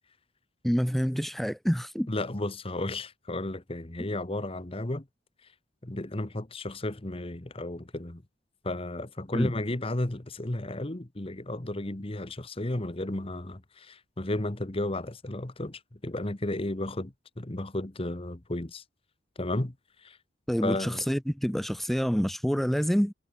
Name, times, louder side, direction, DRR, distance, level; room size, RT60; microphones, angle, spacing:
voice 1, 0.6-2.1 9.3-9.5 20.5-23.1, equal, ahead, 0.7 m, -27 dB
voice 2, 2.1-5.1 5.8-8.2 8.6-18.8 19.4-19.7 20.0-20.2 20.6-21.0, left 1 dB, 30° left, 1.2 m, -33 dB
head